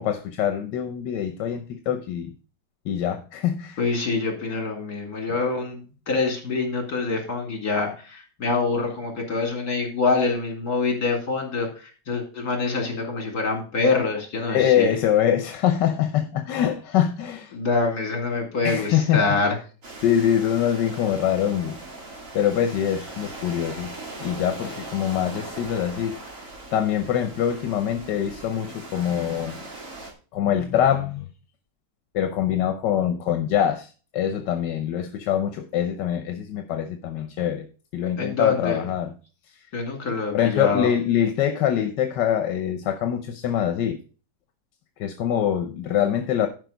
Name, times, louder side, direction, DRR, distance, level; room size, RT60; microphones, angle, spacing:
voice 1, 0.0-2.3 2.8-3.8 14.5-17.5 18.6-19.3 20.0-21.8 22.3-23.9 24.2-26.2 26.7-29.6 30.3-31.3 32.1-37.7 37.9-39.1 40.3-44.0 45.0-46.5, left 9 dB, 85° left, 1.5 m, -24 dB
voice 2, 3.8-14.9 17.5-19.6 38.2-38.8 39.7-40.9, left 3 dB, 60° left, 3.1 m, -25 dB
sound 1, 19.8-30.1, right 2 dB, 50° right, 2.6 m, -39 dB
11.5 x 5.2 x 5.0 m
omnidirectional pair, 1.8 m